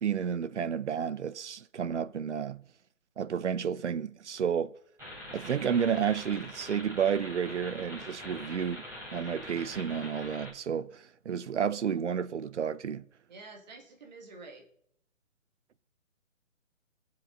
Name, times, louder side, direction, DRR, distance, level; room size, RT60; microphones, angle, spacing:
voice 1, 0.0-2.6 3.2-4.7 5.3-8.8 9.1-13.0, right 7 dB, 60° right, 0.7 m, -31 dB
sound 1, 5.0-10.5, left 1 dB, 5° right, 3.2 m, -44 dB
voice 2, 13.3-14.7, right 3 dB, 35° right, 1.8 m, -49 dB
20.0 x 7.4 x 3.8 m
hypercardioid pair, 165°, 40 cm